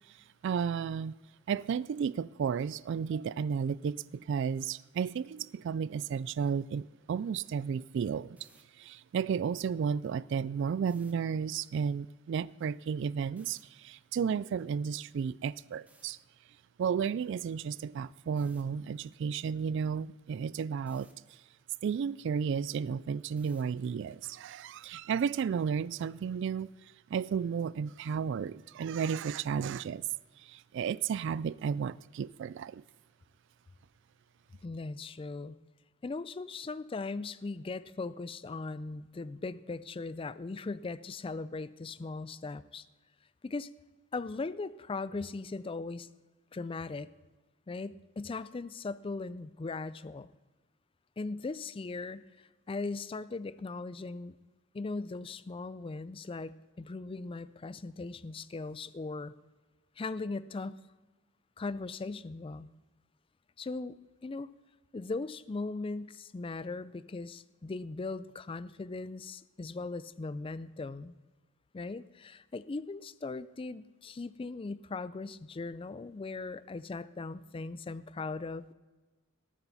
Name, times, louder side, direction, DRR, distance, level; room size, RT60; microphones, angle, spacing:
voice 1, 0.4-1.1 1.5-8.4 8.8-16.2 16.8-21.1 21.8-26.7 27.1-30.0 30.4-32.8, right 6 dB, 60° right, 0.3 m, -33 dB
sound 1, 8.4-8.6 10.8-11.1 13.4-13.6 15.9-16.1 18.4-18.6 20.9-21.1 23.4-23.7, right 2 dB, 5° right, 1.2 m, -62 dB
voice 2, 34.6-35.6 36.0-42.8 43.4-43.7 44.1-46.1 46.5-47.1 47.7-50.3 51.2-54.4 54.7-59.3 60.0-60.8 61.6-62.7 63.6-64.0 64.2-64.5 64.9-71.1 71.7-78.7, left 3 dB, 25° left, 0.4 m, -39 dB
18.5 x 8.9 x 4.1 m
head